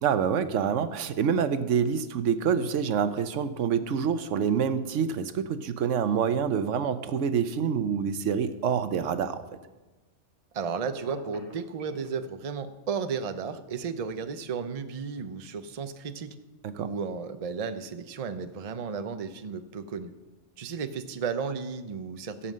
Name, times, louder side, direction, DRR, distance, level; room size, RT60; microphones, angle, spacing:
voice 1, 0.0-9.4 16.6-16.9, right 7 dB, 85° right, 11 dB, 1.1 m, -27 dB
voice 2, 10.5-16.3 16.8-20.1 20.6-22.5, right 5 dB, 40° right, 9 dB, 0.6 m, -34 dB
Telephone, 11.0-12.1, right 1 dB, 15° right, 3.6 m, -48 dB
16.0 x 5.7 x 7.4 m, 1.2 s
omnidirectional pair, 1.2 m